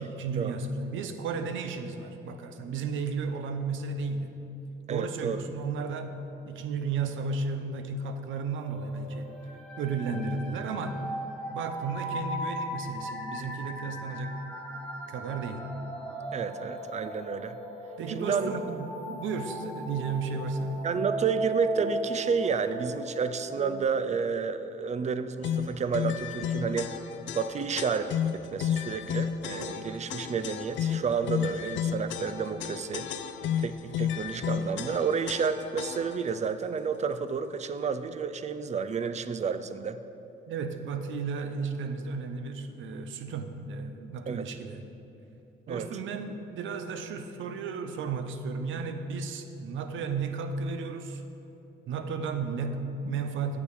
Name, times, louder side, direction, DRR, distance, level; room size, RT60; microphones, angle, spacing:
voice 1, 0.0-4.3 4.9-6.2 6.4-9.3 9.8-11.0 11.5-14.4 15.1-15.6 18.0-20.8 40.5-44.8 45.7-51.2 51.9-53.6, right 4 dB, 75° right, 8 dB, 0.7 m, -33 dB
voice 2, 4.9-5.4 16.3-17.6 18.1-18.5 20.8-26.9 27.3-33.1 33.6-40.0 44.3-44.5 45.7-45.9, right 6 dB, 35° right, 12 dB, 0.5 m, -30 dB
sound 1, 8.6-23.8, right 1 dB, 5° left, 1.5 m, -37 dB
sound 2, 25.4-36.3, left 8 dB, 70° left, 0.5 m, -32 dB
8.4 x 6.8 x 4.7 m, 3.0 s
cardioid pair, 90°, 20 cm